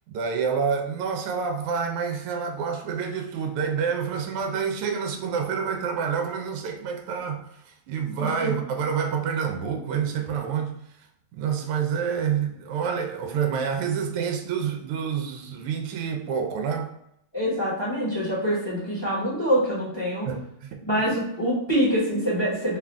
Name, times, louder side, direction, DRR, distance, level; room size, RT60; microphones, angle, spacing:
voice 1, 0.1-10.7 11.3-16.9 20.3-20.8, right 6 dB, 85° right, 1.5 m, -28 dB
voice 2, 8.1-8.5 17.3-20.3 20.8-22.8, equal, 15° left, 0.9 m, -25 dB
3.9 x 2.5 x 3.3 m
omnidirectional pair, 2.4 m